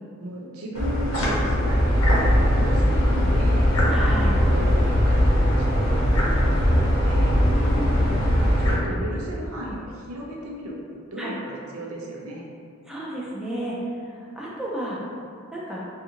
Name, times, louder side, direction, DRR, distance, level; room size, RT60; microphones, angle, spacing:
voice 1, 0.2-3.7 4.4-6.2 6.5-7.4 8.1-8.3 8.6-10.8 11.1-12.4, right 1 dB, 80° right, -2 dB, 0.5 m, -35 dB
sound 1, 0.7-8.7, equal, 85° left, 0.7 m, -20 dB
voice 2, 3.9-4.4 7.4-8.1 11.2-11.3 12.8-13.8 14.0-15.0 15.5-15.8, right 1 dB, 5° right, -6 dB, 0.4 m, -32 dB
2.6 x 2.4 x 2.8 m, 2.3 s
head